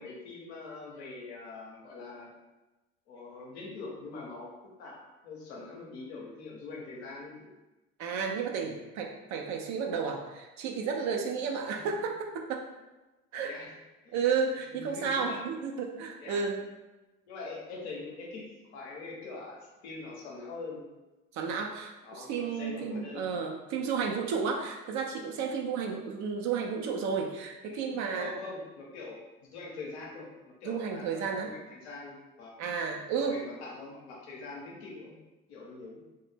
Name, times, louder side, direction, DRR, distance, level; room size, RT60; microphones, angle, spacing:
voice 1, 0.0-2.3 3.1-4.5 4.8-5.0 5.2-7.5 11.6-11.9 13.3-13.7 14.0-14.2 14.7-15.4 16.2-16.4 17.3-18.4 18.7-20.8 22.0-23.3 27.6-32.6 33.1-35.2 35.5-36.0, left 3 dB, 90° left, -3 dB, 0.6 m, -43 dB
voice 2, 8.0-12.6 13.3-13.5 14.1-16.6 21.3-28.4 30.6-31.5 32.6-33.4, right 5 dB, 60° right, 2 dB, 0.4 m, -32 dB
2.1 x 2.0 x 3.2 m, 1.1 s
hypercardioid pair, 60°, 32 cm